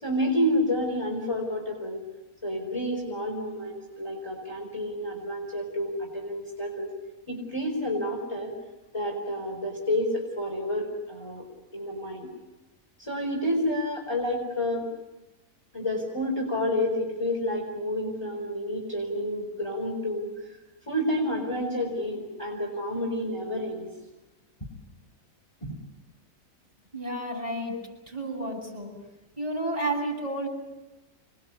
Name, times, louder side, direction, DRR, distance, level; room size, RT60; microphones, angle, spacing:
voice 1, 0.0-2.0 2.4-6.9 7.3-8.5 8.9-11.5 11.7-12.3 13.0-14.9 15.7-20.6 20.9-23.9 25.6-25.7, left 1 dB, 20° left, -1 dB, 4.4 m, -29 dB
voice 2, 26.9-28.9 29.4-30.5, right 1 dB, 25° right, -2 dB, 7.9 m, -31 dB
26.5 x 21.0 x 8.5 m, 1.1 s
omnidirectional pair, 1.5 m